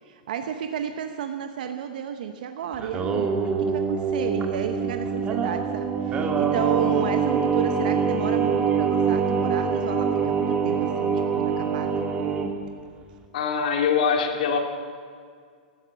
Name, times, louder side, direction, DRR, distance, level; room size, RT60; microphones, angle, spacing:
voice 1, 0.1-12.1, right 8 dB, 70° right, 7 dB, 0.9 m, -32 dB
Singing, 2.7-12.5, right 6 dB, 25° right, 1.8 m, -24 dB
voice 2, 13.3-14.6, left 6 dB, 65° left, 3 dB, 2.3 m, -23 dB
16.0 x 13.0 x 6.2 m, 2.1 s
hypercardioid pair, 115°, 5 cm